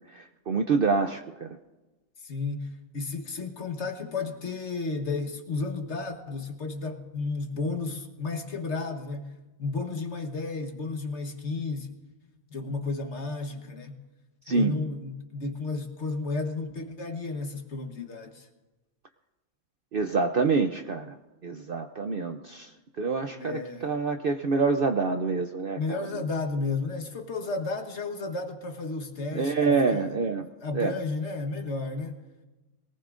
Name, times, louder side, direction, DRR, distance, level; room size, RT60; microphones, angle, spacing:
voice 1, 0.1-1.6 14.5-14.8 19.9-21.2 21.4-26.0 29.3-30.5 30.7-30.9, right 4 dB, 55° right, 6 dB, 0.7 m, -27 dB
voice 2, 2.2-12.0 12.5-14.0 14.5-18.5 23.3-23.9 25.8-30.2 30.6-32.2, left 3 dB, 55° left, 5 dB, 1.5 m, -33 dB
23.0 x 18.5 x 2.5 m, 1.1 s
omnidirectional pair, 1.5 m